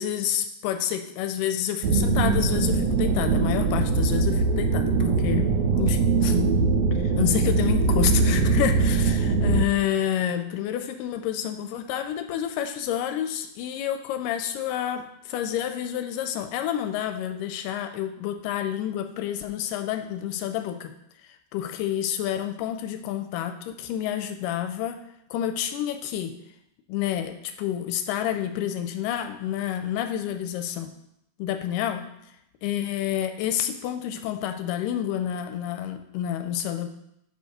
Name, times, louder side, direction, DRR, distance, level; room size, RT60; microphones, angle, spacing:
voice 1, 0.0-5.4 5.7-6.4 7.0-20.9 21.5-25.0 25.3-26.3 26.9-30.9 31.4-32.1 32.6-36.9, left 10 dB, 90° left, 7 dB, 2.2 m, -29 dB
sound 1, 1.8-9.7, right 4 dB, 85° right, 1.5 m, -22 dB
6.7 x 5.3 x 5.0 m, 0.79 s
omnidirectional pair, 3.7 m